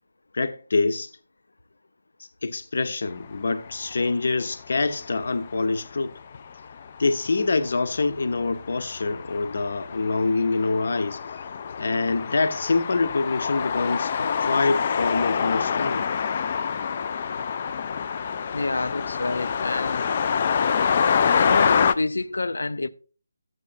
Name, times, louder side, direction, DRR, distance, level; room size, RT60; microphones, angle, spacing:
voice 1, 0.3-1.1 2.4-6.2 7.0-11.2 11.8-16.1, left 3 dB, 55° left, 0.8 m, -25 dB
sound 1, 3.6-3.9 4.5-5.5 5.9-6.0 6.3-21.9, left 6 dB, 30° left, 0.3 m, -26 dB
voice 2, 18.5-20.1 21.3-22.9, left 2 dB, 90° left, 0.5 m, -28 dB
12.5 x 8.1 x 2.6 m
figure-of-eight pair, 175°, 0 cm